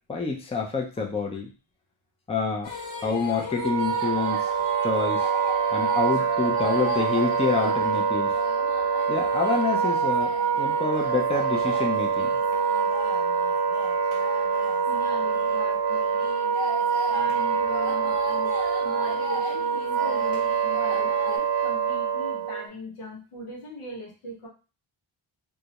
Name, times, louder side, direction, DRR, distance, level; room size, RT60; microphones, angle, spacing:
voice 1, 0.1-1.5 2.3-2.7 3.0-4.5 4.8-5.3 5.7-8.3 9.1-12.4, left 4 dB, 15° left, 2 dB, 0.4 m, -27 dB
sound 1, 2.6-21.4, left 3 dB, 65° left, 1.1 m, -38 dB
Wind instrument woodwind instrument, 3.5-22.7, right 6 dB, 50° right, 0.5 m, -25 dB
voice 2, 14.9-16.2 17.1-18.6 18.8-24.5, equal, 85° left, -1 dB, 0.9 m, -40 dB
2.3 x 2.0 x 2.8 m, 0.33 s
cardioid pair, 70°, 49 cm